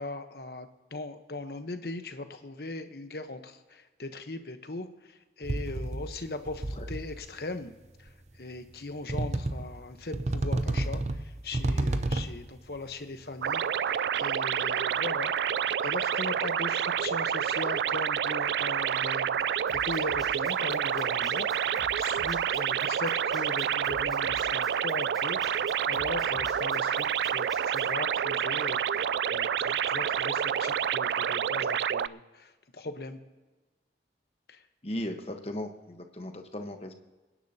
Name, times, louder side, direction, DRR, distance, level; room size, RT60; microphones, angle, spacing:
voice 1, 0.0-7.7 8.0-21.5 22.0-33.2 34.5-34.6, left 2 dB, 60° left, 8 dB, 1.0 m, -39 dB
sound 1, 5.4-6.2 6.5-7.2 8.1-8.2 9.1-9.8 10.1-12.5, right 2 dB, 40° right, 0.7 m, -30 dB
sound 2, 13.4-32.1, right 8 dB, 75° right, 0.3 m, -28 dB
sound 3, 19.7-27.9, equal, ahead, 3.3 m, -49 dB
voice 2, 34.8-36.9, left 1 dB, 35° left, 5 dB, 1.1 m, -37 dB
25.5 x 10.0 x 2.8 m, 1.2 s
head